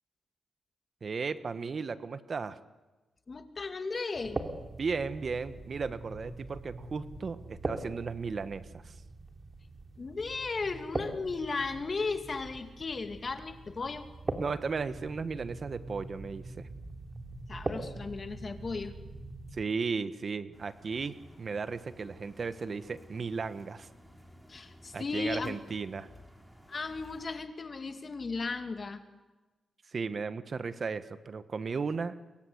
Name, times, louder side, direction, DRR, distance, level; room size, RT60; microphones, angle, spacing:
voice 1, 1.0-2.6 4.8-8.9 14.4-16.7 19.5-23.9 24.9-26.1 29.9-32.2, right 5 dB, 50° right, 12 dB, 1.4 m, -35 dB
voice 2, 3.3-4.4 10.0-14.1 17.5-19.0 24.5-25.6 26.7-29.0, left 4 dB, 40° left, 7 dB, 2.5 m, -35 dB
sound 1, 4.1-19.7, right 2 dB, 35° right, 3.1 m, -42 dB
sound 2, 20.5-27.3, equal, 5° right, 5.1 m, -56 dB
29.5 x 23.5 x 8.1 m, 1.2 s
cardioid pair, 80°, 0 cm